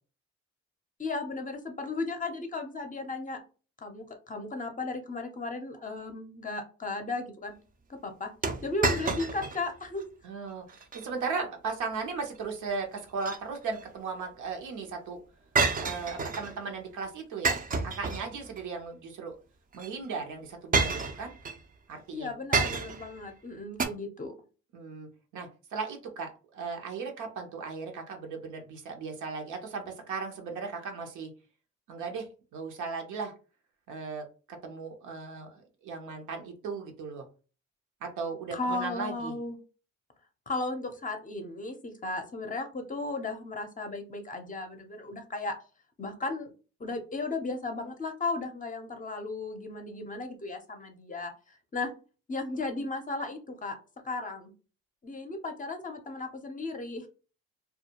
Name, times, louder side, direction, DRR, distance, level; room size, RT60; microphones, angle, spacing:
voice 1, 1.0-3.4 3.8-7.6 8.0-8.3 8.6-10.1 22.1-24.3 38.5-39.6 40.5-45.5 46.0-46.5 46.8-51.3 51.7-51.9 52.3-53.8 54.0-54.5 55.0-57.1, left 3 dB, 25° left, 5 dB, 0.6 m, -35 dB
sound 1, 8.4-9.6 10.0-10.1 10.7-11.0 13.0-13.8 15.6-16.5 17.4-18.6 19.7-19.9 20.7-21.6 22.5-23.1 23.8-23.9, right 4 dB, 30° right, 0.4 m, -29 dB
voice 2, 10.2-15.2 15.8-19.4 19.7-21.3 21.9-22.3 24.7-31.3 31.9-33.3 33.9-37.3 38.0-39.4, right 4 dB, 75° right, 3 dB, 0.8 m, -37 dB
2.3 x 2.1 x 2.8 m, 0.35 s
cardioid pair, 90°, 30 cm